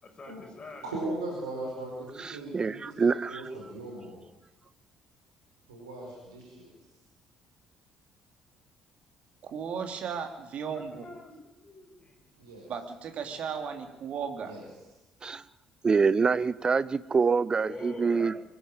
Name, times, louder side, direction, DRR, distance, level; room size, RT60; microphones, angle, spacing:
voice 1, 0.0-1.0 10.7-11.4 11.6-12.2 17.5-18.4, left 3 dB, 35° left, 3 dB, 5.5 m, -46 dB
voice 2, 0.8-4.2 5.7-6.7 12.4-12.7 14.4-14.6, right 2 dB, 75° right, -1 dB, 4.9 m, -38 dB
voice 3, 2.2-3.4 15.2-15.4 15.8-18.3, right 5 dB, 30° right, 19 dB, 0.7 m, -26 dB
voice 4, 9.4-11.1 12.7-14.6, right 6 dB, 50° right, 6 dB, 2.7 m, -35 dB
24.0 x 12.0 x 9.0 m, 1.0 s
figure-of-eight pair, 50°, 3 cm